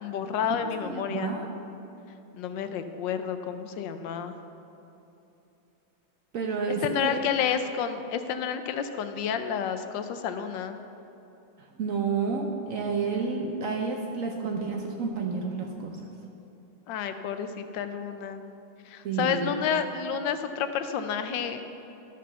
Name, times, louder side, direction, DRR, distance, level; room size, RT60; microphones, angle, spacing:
voice 1, 0.0-1.3 2.3-4.3 6.8-10.8 16.9-18.4 18.9-21.6, left 8 dB, 75° left, 8 dB, 1.2 m, -30 dB
voice 2, 0.6-1.5 6.3-7.2 11.8-16.0 19.0-19.6, right 5 dB, 80° right, 2 dB, 0.7 m, -30 dB
11.5 x 5.1 x 6.7 m, 2.8 s
omnidirectional pair, 2.2 m